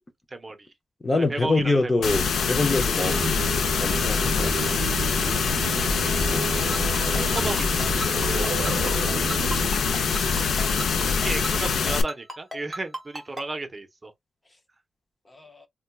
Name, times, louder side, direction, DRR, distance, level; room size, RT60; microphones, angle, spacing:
voice 1, 0.3-0.7 1.2-2.0 5.6-5.9 7.3-7.8 11.2-14.1, right 2 dB, 25° right, 0.7 m, -34 dB
voice 2, 1.0-3.3 3.8-4.6 6.3-6.5 15.3-15.7, left 2 dB, 20° left, 0.5 m, -25 dB
sound 1, 2.0-12.0, left 5 dB, 80° left, 0.5 m, -24 dB
Singing, 3.0-9.7, right 6 dB, 60° right, 0.3 m, -33 dB
Ringtone, 6.7-13.4, right 1 dB, ahead, 1.2 m, -34 dB
4.2 x 2.2 x 2.3 m
wide cardioid pair, 165°, 0 cm